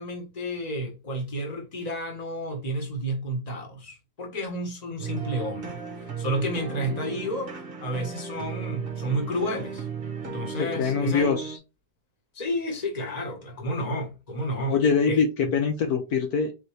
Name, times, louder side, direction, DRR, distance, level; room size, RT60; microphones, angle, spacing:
voice 1, 0.0-9.9 10.2-11.3 12.3-14.8 15.0-15.5, equal, 25° left, 1.3 m, -31 dB
sound 1, 5.0-11.6, right 5 dB, 40° right, 0.9 m, -35 dB
voice 2, 10.6-11.6 14.7-16.5, left 5 dB, 70° left, 1.2 m, -24 dB
4.1 x 3.9 x 3.2 m
omnidirectional pair, 1.8 m